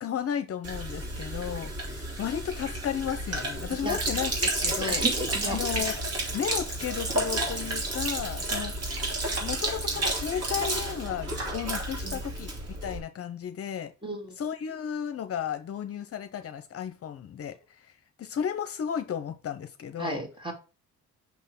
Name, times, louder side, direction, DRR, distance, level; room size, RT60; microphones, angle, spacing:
voice 1, 0.0-5.0 5.4-5.9 6.3-8.7 9.4-13.9 14.4-17.9 18.2-20.2, left 8 dB, 50° left, 0.7 m, -34 dB
Sink (filling or washing), 0.6-13.0, right 2 dB, 55° right, 2.8 m, -31 dB
voice 2, 4.8-5.6 12.0-12.2 14.0-14.4 20.0-20.5, right 2 dB, 15° right, 2.2 m, -33 dB
5.9 x 3.6 x 6.0 m
cardioid pair, 90°, 30 cm